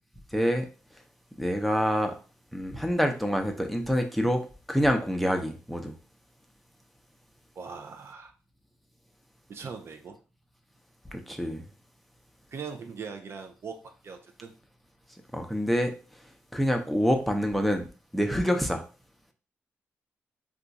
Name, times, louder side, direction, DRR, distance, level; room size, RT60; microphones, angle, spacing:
voice 1, 0.3-0.7 1.4-2.1 2.5-4.4 4.7-5.9 11.1-11.7 15.3-15.9 16.5-17.8 18.1-18.8, equal, ahead, 0.6 m, -26 dB
voice 2, 7.6-8.3 9.5-10.2 12.5-13.8 14.0-14.5, right 5 dB, 55° right, 0.4 m, -40 dB
2.4 x 2.3 x 3.9 m
cardioid pair, 70°, 5 cm